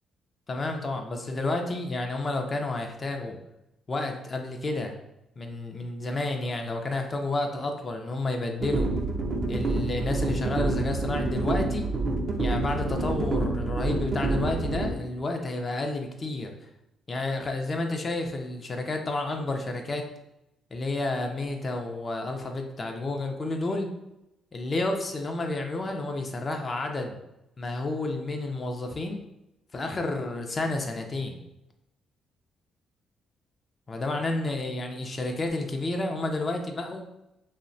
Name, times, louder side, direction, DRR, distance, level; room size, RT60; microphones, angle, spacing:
voice 1, 0.5-3.4 3.9-5.0 5.4-8.9 9.5-11.9 12.4-16.5 17.1-20.0 20.7-23.9 24.5-27.2 27.6-29.2 29.7-31.4 33.9-37.1, left 2 dB, 35° left, 3 dB, 0.4 m, -30 dB
sound 1, 8.6-14.9, right 2 dB, 45° right, 0.3 m, -28 dB
2.7 x 2.0 x 2.5 m, 0.89 s
cardioid pair, 90°, 0 cm